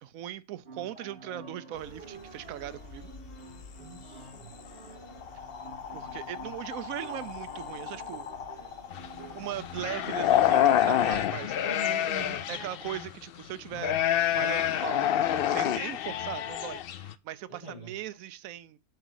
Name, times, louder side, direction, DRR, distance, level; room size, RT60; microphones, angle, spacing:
voice 1, 0.0-3.1 5.9-8.3 9.3-11.7 12.5-14.0 14.3-18.8, right 12 dB, 70° right, 1.0 m, -39 dB
sound 1, 0.6-11.2, right 3 dB, 40° right, 2.4 m, -49 dB
sound 2, 1.7-11.3, left 6 dB, 50° left, 0.9 m, -44 dB
voice 2, 3.8-4.5 11.6-12.7 17.5-18.0, equal, 25° right, 2.3 m, -44 dB
sound 3, 8.9-9.1 9.6-13.1 13.7-17.1, left 11 dB, 90° left, 0.5 m, -27 dB
7.4 x 4.0 x 6.3 m
omnidirectional pair, 1.5 m